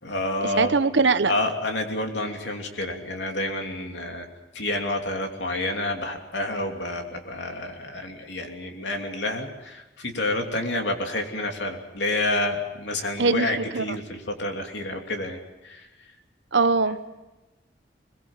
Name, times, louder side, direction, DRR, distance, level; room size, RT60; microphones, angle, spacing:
voice 1, 0.0-0.8 1.3-4.3 4.5-15.4 15.6-15.9, left 2 dB, 75° left, 3 dB, 3.0 m, -29 dB
voice 2, 0.5-1.3 13.2-13.8 16.5-17.2, right 4 dB, 80° right, 12 dB, 1.0 m, -22 dB
22.0 x 22.0 x 7.3 m, 1.1 s
head